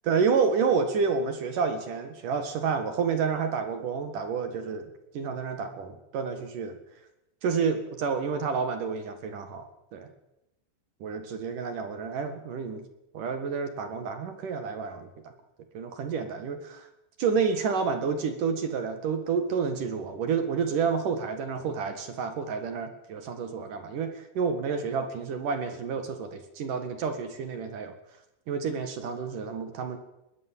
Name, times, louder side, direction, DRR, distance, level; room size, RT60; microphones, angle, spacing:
voice 1, 0.1-4.8 5.1-6.8 7.4-10.1 11.0-12.8 13.1-15.3 15.7-16.8 17.2-27.9 28.5-30.0, right 5 dB, 55° right, 8 dB, 3.0 m, -29 dB
22.0 x 17.5 x 7.6 m, 0.89 s
omnidirectional pair, 5.1 m